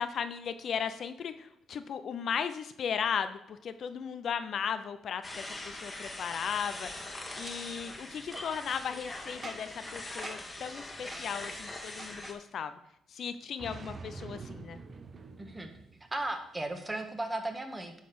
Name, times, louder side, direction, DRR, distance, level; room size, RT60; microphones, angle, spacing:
voice 1, 0.0-7.1 7.4-12.7 13.1-14.8, left 7 dB, 60° left, 10 dB, 0.6 m, -36 dB
sound 1, 5.2-12.3, left 2 dB, 20° left, 1.5 m, -42 dB
Boom, 7.4-7.5 8.3-8.5 9.4-9.8 10.2-10.6 11.1-11.3 12.0-12.4 13.6-16.3, right 4 dB, 40° right, 0.9 m, -46 dB
voice 2, 15.4-15.7 16.1-18.0, right 2 dB, 15° right, 5 dB, 1.6 m, -36 dB
10.0 x 4.1 x 6.9 m, 0.77 s
cardioid pair, 90°, 0 cm